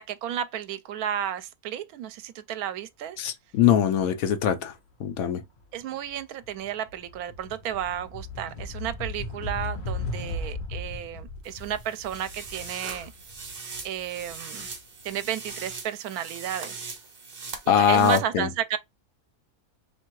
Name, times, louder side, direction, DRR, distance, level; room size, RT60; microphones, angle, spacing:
voice 1, 0.0-3.2 5.7-13.1 13.8-14.7 15.0-16.8 17.8-18.8, right 10 dB, 80° right, 1.0 m, -32 dB
voice 2, 3.2-4.7 5.0-5.4 17.7-18.5, left 9 dB, 70° left, 1.1 m, -22 dB
sound 1, 5.6-5.8 6.2-15.0, left 2 dB, 40° left, 1.0 m, -37 dB
sound 2, 11.4-18.2, right 4 dB, 45° right, 1.0 m, -41 dB
3.3 x 2.9 x 4.6 m
omnidirectional pair, 1.6 m